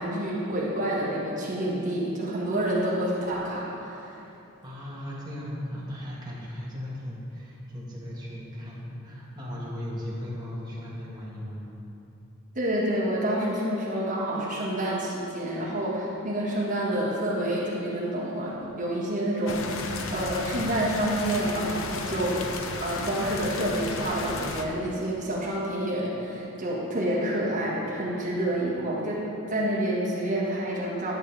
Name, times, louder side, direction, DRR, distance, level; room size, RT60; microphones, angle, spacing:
voice 1, 0.0-4.1 12.5-31.2, right 1 dB, 40° right, -6 dB, 1.8 m, -28 dB
voice 2, 4.6-11.7, left 1 dB, 20° right, -6 dB, 1.6 m, -37 dB
sound 1, 19.5-24.6, left 3 dB, 70° left, 0.6 m, -34 dB
11.5 x 6.5 x 3.5 m, 2.9 s
head